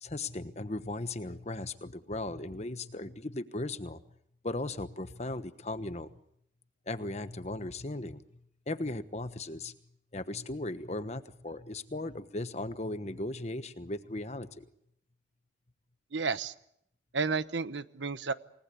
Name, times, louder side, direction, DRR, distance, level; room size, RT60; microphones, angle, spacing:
voice 1, 0.0-4.0 4.4-6.1 6.9-8.2 8.7-9.7 10.1-14.6, left 2 dB, 35° left, 12 dB, 1.2 m, -37 dB
voice 2, 16.1-16.5 17.1-18.3, right 4 dB, 85° right, 14 dB, 1.0 m, -31 dB
28.5 x 18.5 x 8.4 m, 0.76 s
head